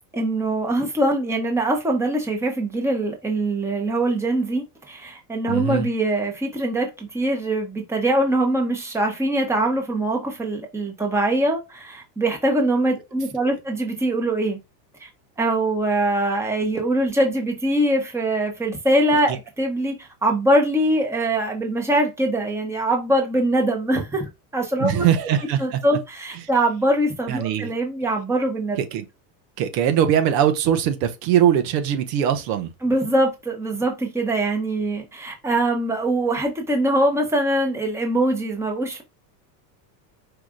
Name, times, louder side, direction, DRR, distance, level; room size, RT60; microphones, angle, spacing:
voice 1, 0.1-14.6 15.0-15.1 15.4-25.1 25.6-28.8 32.8-39.0, right 1 dB, 5° right, 1.1 m, -23 dB
voice 2, 5.5-5.9 24.8-25.8 27.3-27.7 28.8-29.0 29.6-32.7, right 10 dB, 70° right, 1.1 m, -21 dB
4.9 x 2.6 x 3.7 m
supercardioid pair, 130°, 50 cm